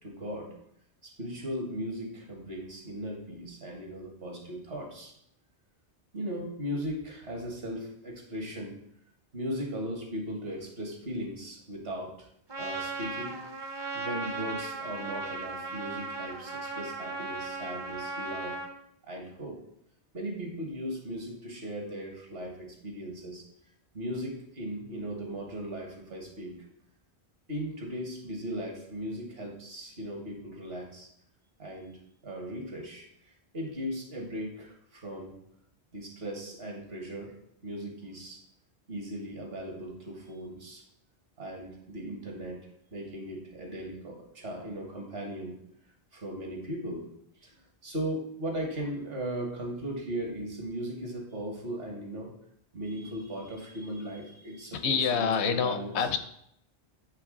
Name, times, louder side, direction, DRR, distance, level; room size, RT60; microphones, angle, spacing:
voice 1, 0.0-0.5 1.0-5.1 6.1-8.7 9.3-12.3 12.6-13.4 13.9-18.6 19.1-19.6 20.1-23.4 23.9-26.5 27.5-31.1 31.6-32.0 32.2-35.3 35.9-37.3 37.6-38.4 38.9-40.8 41.4-42.6 42.9-45.6 46.1-47.1 47.4-47.6 47.8-52.3 52.7-55.9, equal, 65° right, 1 dB, 1.6 m, -37 dB
Trumpet, 12.5-18.7, right 3 dB, 30° right, 0.5 m, -37 dB
voice 2, 54.7-56.2, left 6 dB, 75° left, 10 dB, 0.8 m, -27 dB
7.8 x 3.3 x 3.7 m, 0.73 s
omnidirectional pair, 1.1 m